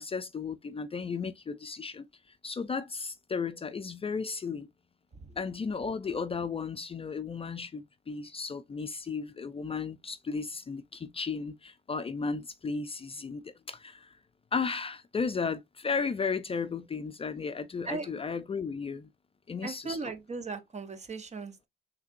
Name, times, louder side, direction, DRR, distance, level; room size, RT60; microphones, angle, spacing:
voice 1, 0.0-2.1 2.4-4.7 5.4-14.2 14.5-19.1 19.5-20.1, left 5 dB, 30° left, 0.5 m, -34 dB
voice 2, 19.6-21.7, right 4 dB, 35° right, 1.0 m, -38 dB
5.5 x 3.4 x 2.5 m
cardioid pair, 90°, 20 cm